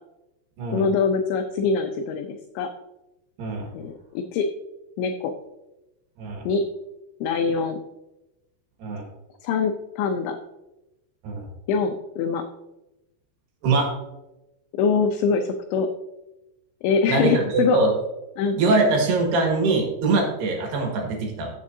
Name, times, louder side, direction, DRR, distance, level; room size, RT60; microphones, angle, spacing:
voice 1, 0.7-2.7 3.7-4.5 5.0-5.3 6.5-6.6 7.2-7.8 9.4-10.4 11.7-12.4 14.7-15.9 16.8-17.8 18.4-18.6, left 5 dB, 80° left, 5 dB, 2.7 m, -23 dB
voice 2, 3.4-3.7 6.2-6.5 8.8-9.0 11.2-11.5 13.6-13.9 17.1-17.9 18.6-21.5, right 3 dB, 65° right, 1 dB, 3.4 m, -22 dB
15.5 x 7.3 x 2.7 m, 0.95 s
omnidirectional pair, 5.6 m